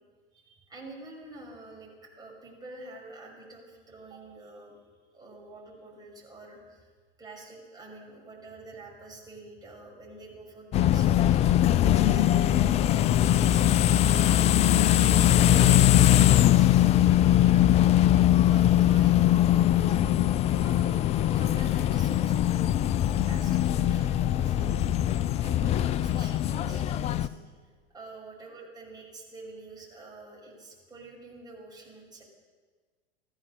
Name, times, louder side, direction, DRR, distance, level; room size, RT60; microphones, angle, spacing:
voice 1, 0.3-4.8 5.1-6.9 7.2-11.4 11.8-12.6 13.0-17.6 18.5-20.0 20.6-22.9 23.2-24.7 25.4-27.4 27.9-32.2, right 3 dB, 15° right, -3 dB, 6.1 m, -47 dB
sound 1, 10.7-27.3, left 12 dB, 20° left, 0.4 m, -21 dB
15.5 x 14.0 x 6.6 m, 1.5 s
figure-of-eight pair, 85°, 30 cm